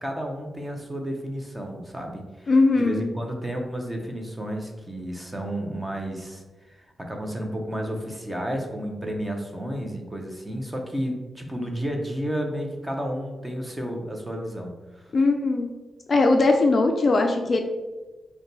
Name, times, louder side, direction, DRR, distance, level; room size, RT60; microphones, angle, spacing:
voice 1, 0.0-15.0, equal, 10° right, 2 dB, 0.5 m, -32 dB
voice 2, 2.5-3.0 15.1-15.7 16.1-17.6, left 3 dB, 40° left, 4 dB, 0.3 m, -20 dB
5.2 x 2.2 x 3.1 m, 1.2 s
wide cardioid pair, 175°, 0 cm